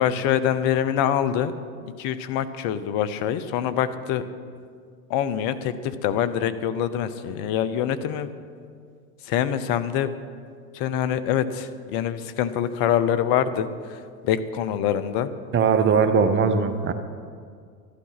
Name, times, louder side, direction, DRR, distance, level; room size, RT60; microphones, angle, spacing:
voice 1, 0.0-1.6 2.0-4.2 5.1-8.3 9.2-10.1 10.7-14.0 14.2-15.3, left 9 dB, 45° left, 13 dB, 0.9 m, -25 dB
voice 2, 15.5-16.9, right 6 dB, 25° right, 9 dB, 0.9 m, -20 dB
13.0 x 12.0 x 5.8 m, 2.1 s
hypercardioid pair, 100°, 48 cm